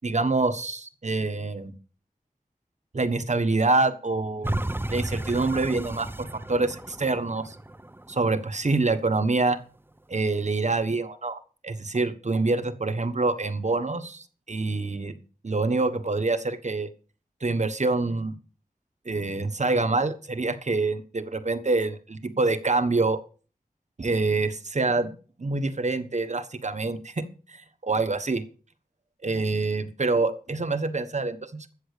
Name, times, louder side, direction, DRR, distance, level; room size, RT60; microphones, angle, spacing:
voice 1, 0.0-1.7 2.9-4.5 4.9-7.6 8.1-9.6 10.1-15.1 15.4-16.9 17.4-18.3 19.0-23.2 24.0-25.1 25.4-27.1 27.5-28.4 29.2-31.7, right 3 dB, 50° right, 10 dB, 1.3 m, -26 dB
sound 1, 4.4-9.5 10.0-10.1, right 1 dB, 15° right, 0.7 m, -34 dB
13.5 x 7.9 x 6.7 m, 0.39 s
wide cardioid pair, 75°, 15 cm